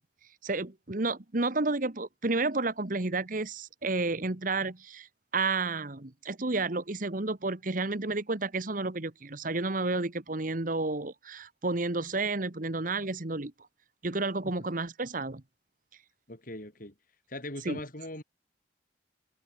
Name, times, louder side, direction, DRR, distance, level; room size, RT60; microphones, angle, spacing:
voice 1, 0.4-5.1 5.3-13.5 14.0-15.4 17.6-17.8, right 3 dB, 50° right, 1.4 m, -31 dB
voice 2, 16.3-16.9 17.3-18.2, left 1 dB, 50° left, 7.8 m, -40 dB
head